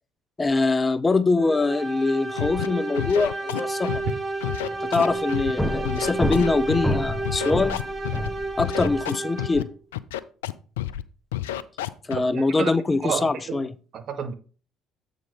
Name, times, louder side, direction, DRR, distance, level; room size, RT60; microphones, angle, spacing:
voice 1, 0.4-4.0 4.8-7.8 8.6-9.7 12.1-13.7, left 3 dB, 25° left, 0.5 m, -23 dB
sound 1, 1.4-9.7, right 2 dB, 40° right, 3.9 m, -31 dB
Scratching (performance technique), 2.4-2.7 2.9-4.1 4.4-5.5 5.8-6.9 7.2-8.3 8.6-9.6 9.9-10.5 10.8-11.0 11.3-12.1, left 14 dB, 80° left, 0.3 m, -30 dB
sound 2, 4.5-4.8 5.0-9.0, left 1 dB, ahead, 1.0 m, -29 dB
voice 2, 12.1-12.7 13.0-13.7 13.9-14.3, right 7 dB, 55° right, 0.9 m, -31 dB
7.7 x 4.0 x 5.0 m
hypercardioid pair, 55°, 0 cm